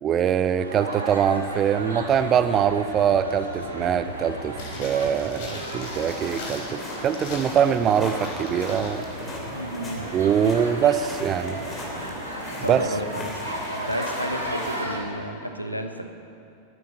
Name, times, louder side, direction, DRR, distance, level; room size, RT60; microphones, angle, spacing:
voice 1, 0.0-9.0 10.1-11.6 12.7-12.8, right 8 dB, 30° right, 13 dB, 0.6 m, -23 dB
sound 1, 0.6-15.0, right 1 dB, 75° right, 1.9 m, -35 dB
sound 2, 4.5-9.0 9.2-9.3, left 2 dB, 50° left, 3.4 m, -40 dB
sound 3, 5.8-14.8, left 2 dB, 20° left, 3.1 m, -39 dB
voice 2, 9.5-10.1 12.6-13.4 13.7-16.1, equal, 90° left, 6 dB, 0.9 m, -32 dB
10.5 x 9.4 x 9.1 m, 2.7 s
figure-of-eight pair, 90°, 0 cm